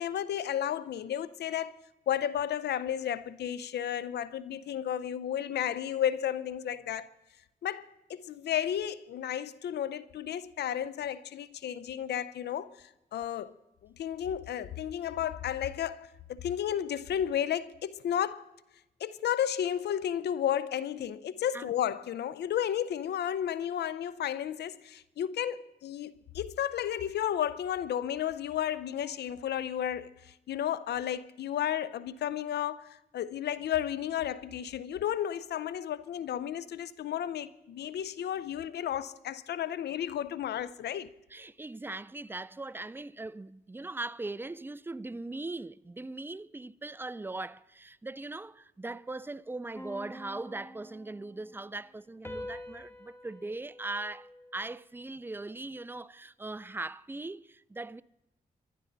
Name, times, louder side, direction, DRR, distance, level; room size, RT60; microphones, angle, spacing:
voice 1, 0.0-1.7 2.1-7.1 7.6-13.5 13.8-18.4 19.0-41.1, left 10 dB, 85° left, 0.5 m, -33 dB
voice 2, 41.3-58.0, right 2 dB, 15° right, 0.4 m, -40 dB
sound 1, 49.7-51.5 52.2-54.9, left 1 dB, 15° left, 2.0 m, -46 dB
24.0 x 11.0 x 3.9 m
cardioid pair, 60°, 17 cm